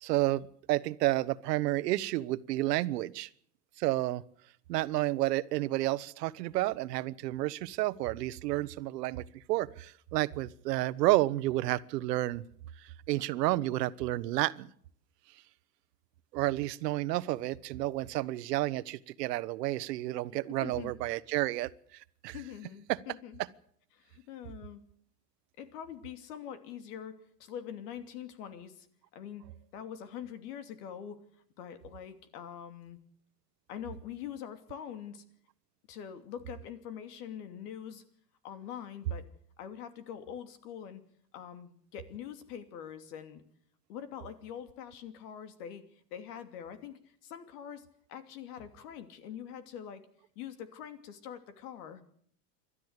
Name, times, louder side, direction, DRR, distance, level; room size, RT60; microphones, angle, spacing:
voice 1, 0.0-3.3 3.8-4.2 4.7-12.4 13.1-14.7 16.3-21.7 22.2-22.3 22.9-23.0, right 17 dB, 85° right, 16 dB, 1.1 m, -30 dB
voice 2, 20.6-20.9 22.3-23.4 23.9-24.8 25.6-28.9 29.1-29.4 29.7-31.2 31.6-33.0 33.7-35.2 35.9-38.0 38.4-39.3 39.6-41.0 41.3-43.4 43.9-45.8 46.1-50.1 50.3-52.0, left 9 dB, 70° left, 9 dB, 2.9 m, -44 dB
27.5 x 12.5 x 8.2 m, 0.65 s
supercardioid pair, 145°, 47 cm